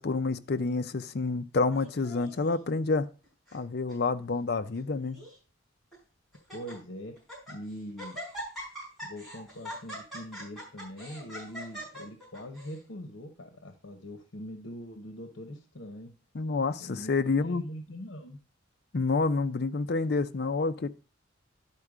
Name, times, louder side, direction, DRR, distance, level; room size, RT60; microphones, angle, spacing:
voice 1, 0.0-3.1 3.5-5.2 16.3-17.6 18.9-20.9, left 3 dB, 50° left, 0.5 m, -28 dB
Laughter, 1.7-2.5 3.2-3.6 3.9-4.0 4.7-5.4 5.9-6.0 6.3-6.7 7.2-7.6 8.0-12.8, equal, ahead, 5.1 m, -42 dB
voice 2, 6.5-7.2 7.5-8.2 9.0-16.1 16.8-18.4, equal, 70° left, 1.0 m, -42 dB
11.0 x 4.5 x 4.9 m
head